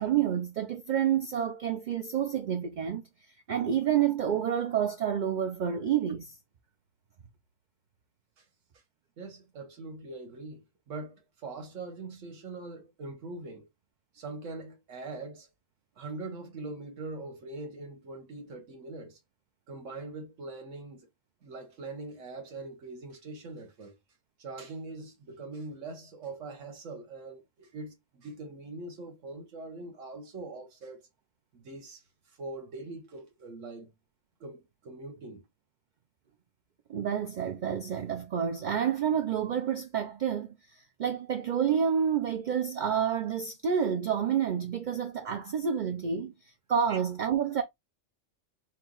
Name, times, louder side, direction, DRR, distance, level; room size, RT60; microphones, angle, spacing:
voice 1, 0.0-3.0 3.5-6.3 36.9-40.6 41.0-46.3 46.7-47.6, right 8 dB, 55° right, 0.5 m, -29 dB
voice 2, 9.2-13.7 14.1-15.5 16.0-19.2 19.7-21.1 21.4-24.0 24.4-31.1 31.5-32.0 32.4-33.9 34.4-35.4 46.9-47.0, right 3 dB, 80° right, 1.3 m, -42 dB
4.4 x 2.3 x 3.7 m
omnidirectional pair, 1.3 m